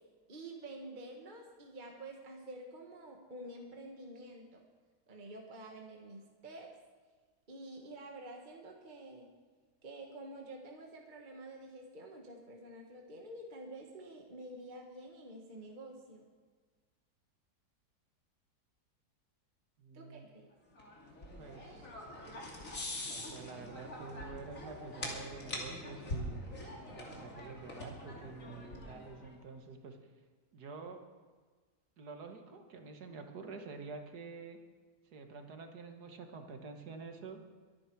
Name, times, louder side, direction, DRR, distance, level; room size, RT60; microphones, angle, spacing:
voice 1, 0.3-4.6 5.1-6.7 7.5-9.3 9.8-16.3 19.9-20.5, right 1 dB, 30° right, 1 dB, 1.5 m, -49 dB
voice 2, 19.8-20.3 21.4-21.9 23.0-26.4 26.9-30.0 30.5-31.0 32.0-34.6 35.1-37.4, right 4 dB, 75° right, 5 dB, 2.0 m, -48 dB
sound 1, 20.8-29.3, left 1 dB, 50° left, 3.1 m, -44 dB
23.0 x 9.6 x 4.6 m, 1.4 s
omnidirectional pair, 1.7 m